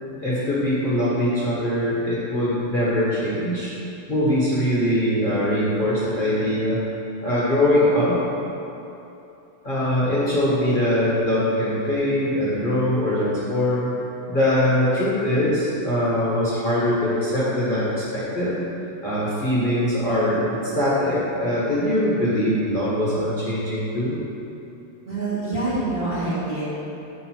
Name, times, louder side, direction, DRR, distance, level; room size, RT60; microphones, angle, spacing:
voice 1, 0.2-3.7 4.1-6.8 7.2-8.2 9.6-13.9 14.3-18.6 19.0-24.2, left 1 dB, 25° left, -9 dB, 1.5 m, -22 dB
voice 2, 25.1-26.6, right 2 dB, 30° right, -10 dB, 1.6 m, -26 dB
11.0 x 4.0 x 6.1 m, 2.9 s
omnidirectional pair, 2.4 m